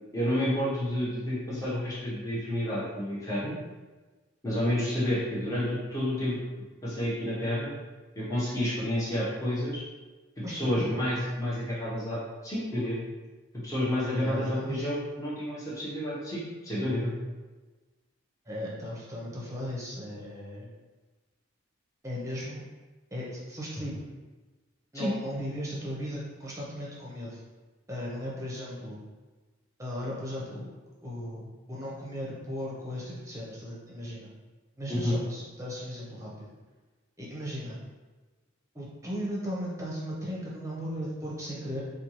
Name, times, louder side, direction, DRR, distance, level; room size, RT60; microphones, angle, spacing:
voice 1, 0.1-3.5 4.4-6.3 6.8-7.7 8.2-9.8 10.4-13.0 13.6-17.1 24.9-25.1 34.9-35.1, left 1 dB, 15° left, -9 dB, 0.9 m, -30 dB
voice 2, 10.4-10.8 14.1-14.9 18.5-20.7 22.0-22.6 23.1-24.0 24.9-27.4 27.9-29.0 29.8-30.7 31.0-34.3 34.8-36.5 37.2-37.8 38.7-41.8, equal, 15° right, -5 dB, 0.8 m, -36 dB
4.2 x 2.3 x 3.0 m, 1.3 s
head